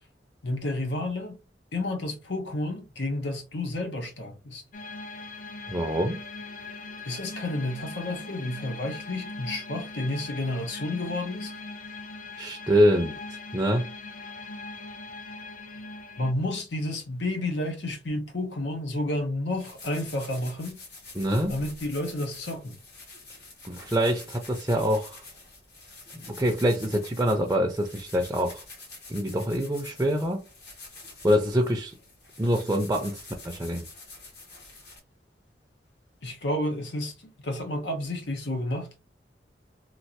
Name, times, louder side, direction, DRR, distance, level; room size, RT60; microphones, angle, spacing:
voice 1, 0.4-1.4 1.7-4.6 7.0-11.5 16.2-20.8 21.5-22.8 36.2-38.9, left 1 dB, 85° left, 0.9 m, -31 dB
sound 1, 4.7-16.3, left 3 dB, 50° left, 0.5 m, -40 dB
voice 2, 5.7-6.2 12.4-13.2 13.5-13.9 21.1-21.5 23.6-25.2 26.1-28.6 29.1-30.4 31.2-31.9 32.4-33.8, equal, 15° right, 0.5 m, -25 dB
sound 2, 19.6-35.0, left 3 dB, 65° left, 1.6 m, -47 dB
3.1 x 2.5 x 2.8 m
head